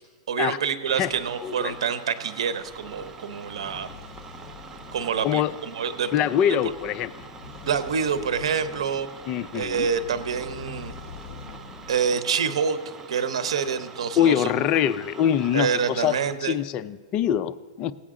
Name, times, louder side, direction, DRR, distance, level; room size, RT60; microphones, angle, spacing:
voice 1, 0.3-3.9 4.9-6.3 7.6-9.1 9.5-10.9 11.9-12.8 13.1-14.5 15.5-16.5, right 6 dB, 80° right, 11 dB, 0.9 m, -27 dB
sound 1, 0.8-16.3, right 4 dB, 15° right, 0.6 m, -44 dB
voice 2, 1.4-1.8 5.2-5.5 6.1-7.1 9.3-9.9 14.2-17.9, left 10 dB, 30° left, 14 dB, 0.4 m, -24 dB
sound 2, 2.4-12.1, left 5 dB, 50° left, 1.2 m, -45 dB
17.0 x 8.5 x 3.7 m, 1.4 s
hypercardioid pair, 145°, 3 cm